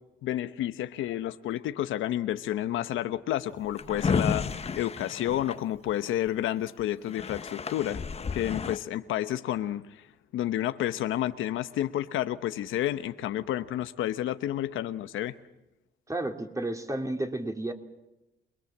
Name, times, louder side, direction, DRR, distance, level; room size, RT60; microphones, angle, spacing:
voice 1, 0.2-8.0 8.3-10.0 10.3-15.4, left 12 dB, 85° left, 11 dB, 1.0 m, -30 dB
Drawer open or close, 3.5-6.3 6.8-6.9 7.1-8.8, left 5 dB, 30° left, 1.0 m, -32 dB
voice 2, 16.1-17.7, right 2 dB, 15° right, 4 dB, 3.2 m, -32 dB
29.0 x 21.5 x 7.3 m, 0.95 s
cardioid pair, 90°, 20 cm